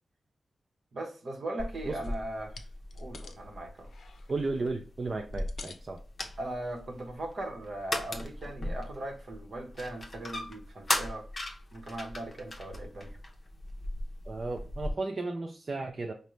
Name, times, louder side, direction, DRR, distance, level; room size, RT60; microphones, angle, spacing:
voice 1, 0.9-2.6 3.0-3.9 6.4-11.3 11.7-13.2, right 1 dB, 55° right, 0.9 m, -39 dB
sound 1, 1.6-14.9, left 1 dB, 30° left, 0.7 m, -38 dB
sound 2, 2.0-2.2 2.5-3.4 3.8-4.7 5.2-6.0 6.6-6.8 7.2-7.3, left 5 dB, 85° left, 0.5 m, -50 dB
voice 2, 4.3-6.0 14.3-16.1, right 3 dB, 40° right, 0.4 m, -34 dB
5.2 x 2.1 x 3.0 m
wide cardioid pair, 160°, 0 cm